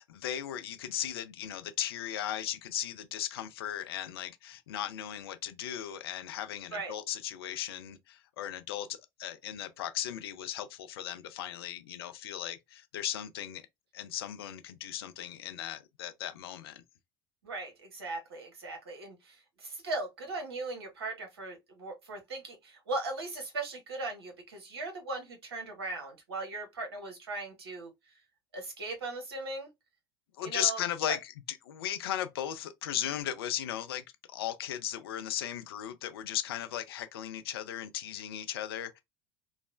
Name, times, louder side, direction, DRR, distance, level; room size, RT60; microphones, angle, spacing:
voice 1, 0.0-13.6 13.9-16.8 30.4-39.0, left 11 dB, 70° left, 0.4 m, -37 dB
voice 2, 17.4-27.9 28.5-29.7 30.4-30.8 31.1-31.2, right 2 dB, 75° right, 1.0 m, -38 dB
3.1 x 2.0 x 2.4 m
figure-of-eight pair, 70°, 13 cm